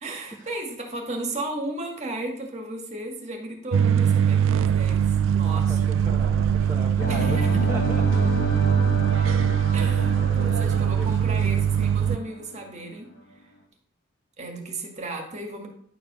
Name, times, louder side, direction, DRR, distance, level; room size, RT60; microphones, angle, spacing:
voice 1, 0.0-5.8 7.1-7.5 9.7-13.1 14.4-15.7, right 2 dB, 35° right, 2 dB, 2.0 m, -34 dB
sound 1, 3.7-12.2, right 8 dB, 65° right, 0.4 m, -22 dB
voice 2, 5.4-7.4 7.7-8.0 8.4-8.6 9.9-11.6, equal, 15° right, -4 dB, 1.3 m, -37 dB
sound 2, 7.0-12.9, equal, 75° left, 2.3 m, -31 dB
11.0 x 5.1 x 6.2 m, 0.64 s
head